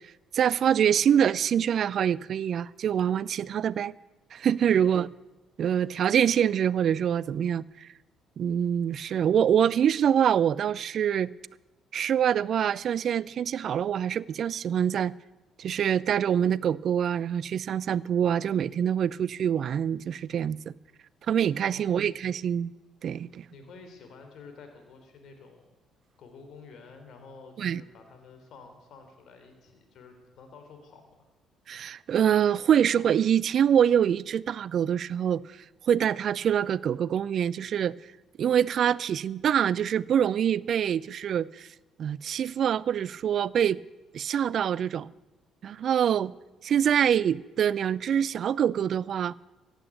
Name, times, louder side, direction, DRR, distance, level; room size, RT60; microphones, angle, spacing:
voice 1, 0.3-3.9 4.3-5.1 5.6-7.9 8.4-11.3 11.9-15.1 15.6-20.7 21.3-22.7 23.0-23.5 27.6-27.8 31.7-35.4 35.9-38.0 38.4-41.7 42.0-43.8 44.1-45.1 45.6-46.3 46.6-49.3, right 9 dB, 60° right, 0.4 m, -25 dB
voice 2, 4.6-5.1 21.6-22.2 23.5-25.7 26.2-31.2, left 4 dB, 65° left, 3.4 m, -50 dB
15.5 x 8.9 x 8.4 m
hypercardioid pair, 55°, 0 cm